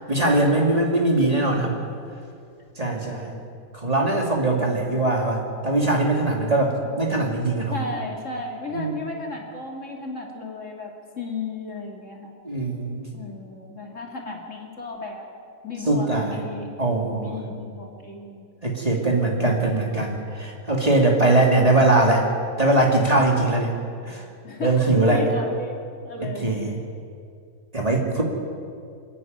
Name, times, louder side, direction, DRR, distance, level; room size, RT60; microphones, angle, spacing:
voice 1, 0.1-1.8 2.8-3.3 3.8-7.7 8.7-9.0 12.4-13.1 15.9-16.3 16.8-17.4 18.6-22.3 22.6-23.8 24.0-24.2 24.6-25.2 26.2-26.8 27.7-28.2, right 2 dB, 25° right, 0 dB, 2.7 m, -21 dB
voice 2, 7.7-12.4 13.1-15.2 15.6-16.7 17.2-18.5 24.4-25.7 26.0-26.5, left 3 dB, 55° left, 0 dB, 2.9 m, -34 dB
28.5 x 10.0 x 9.3 m, 2.4 s
omnidirectional pair, 1.6 m